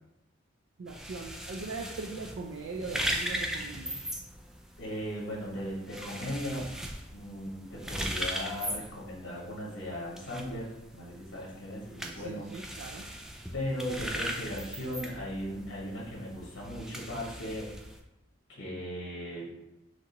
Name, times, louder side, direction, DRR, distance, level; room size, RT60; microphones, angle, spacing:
voice 1, 0.8-4.0 12.1-13.1, right 3 dB, 80° right, 1 dB, 0.4 m, -40 dB
sound 1, 0.9-18.0, equal, 5° right, 0.4 m, -39 dB
voice 2, 4.8-6.7 7.1-12.5 13.5-17.7 18.5-19.5, equal, 90° left, -4 dB, 1.3 m, -37 dB
5.9 x 3.0 x 2.9 m, 0.93 s
head